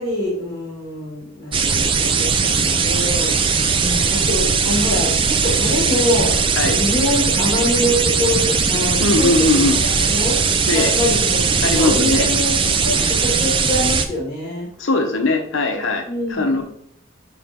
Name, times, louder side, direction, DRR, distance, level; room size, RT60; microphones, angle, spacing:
voice 1, 0.0-6.4 6.7-12.5 12.8-14.7 16.1-16.6, left 1 dB, 25° left, -7 dB, 2.1 m, -25 dB
sound 1, 1.5-14.1, right 5 dB, 25° right, 0.4 m, -19 dB
voice 2, 9.0-9.8 10.7-10.9 11.6-12.3 14.8-16.6, left 2 dB, 65° left, 3 dB, 0.8 m, -20 dB
6.6 x 3.3 x 4.3 m, 0.68 s
head